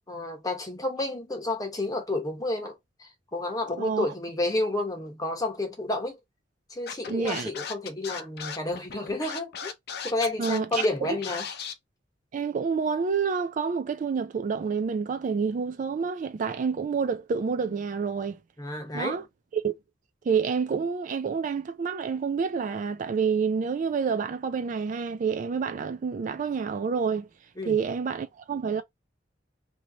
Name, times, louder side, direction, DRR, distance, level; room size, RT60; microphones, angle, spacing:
voice 1, 0.0-6.2 6.7-9.7 10.0-11.5 18.6-19.2 27.6-27.8, left 2 dB, 20° left, 1.0 m, -30 dB
Scratching (performance technique), 6.9-11.7, left 7 dB, 60° left, 0.6 m, -36 dB
voice 2, 7.1-7.5 10.4-11.2 12.3-18.4 18.9-19.2 19.5-19.7 20.3-27.3 27.7-28.8, right 6 dB, 45° right, 0.3 m, -28 dB
3.0 x 2.7 x 2.7 m
head